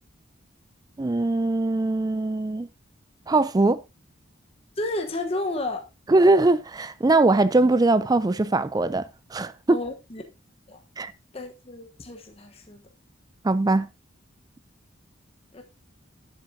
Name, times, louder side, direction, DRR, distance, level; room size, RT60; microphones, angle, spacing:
voice 1, 1.0-2.7 3.3-3.8 6.1-9.0 9.3-9.8 11.0-11.1 13.4-13.9, right 2 dB, 20° right, 0.4 m, -21 dB
voice 2, 4.8-5.9 9.7-10.2 10.7-10.8 11.3-12.8 15.5-15.6, left 2 dB, 30° left, 1.1 m, -32 dB
11.0 x 7.9 x 2.7 m
head